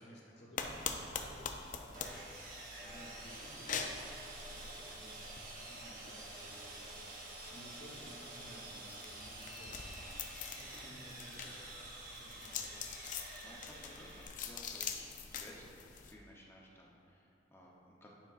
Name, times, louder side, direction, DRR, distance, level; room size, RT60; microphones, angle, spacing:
voice 1, 0.0-2.4 2.8-10.0 10.6-11.9 12.2-12.9, equal, 65° left, -4 dB, 1.2 m, -56 dB
sound 1, 0.6-16.1, left 6 dB, 45° left, 0.4 m, -45 dB
Sawing, 1.9-14.3, right 2 dB, 50° right, 0.9 m, -49 dB
voice 2, 10.2-10.9 13.4-18.2, equal, 15° left, -3 dB, 0.7 m, -57 dB
9.1 x 5.0 x 2.4 m, 2.7 s
head